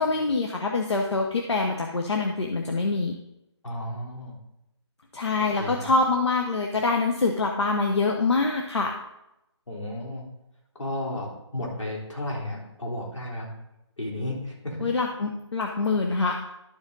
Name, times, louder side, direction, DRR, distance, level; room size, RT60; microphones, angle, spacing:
voice 1, 0.0-3.1 5.1-9.0 14.8-16.3, left 3 dB, 70° left, 2 dB, 1.0 m, -25 dB
voice 2, 3.6-4.4 5.6-5.9 9.7-10.2 10.8-13.5 14.0-14.9, left 1 dB, 90° left, -3 dB, 3.5 m, -33 dB
12.0 x 5.0 x 4.0 m, 0.87 s
hypercardioid pair, 175°, 15 cm